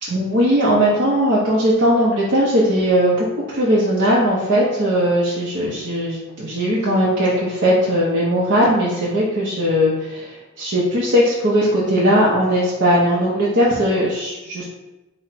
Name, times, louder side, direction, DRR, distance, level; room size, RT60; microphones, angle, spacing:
voice 1, 0.0-14.6, equal, 55° right, -7 dB, 0.7 m, -18 dB
4.2 x 2.1 x 4.2 m, 1.0 s
head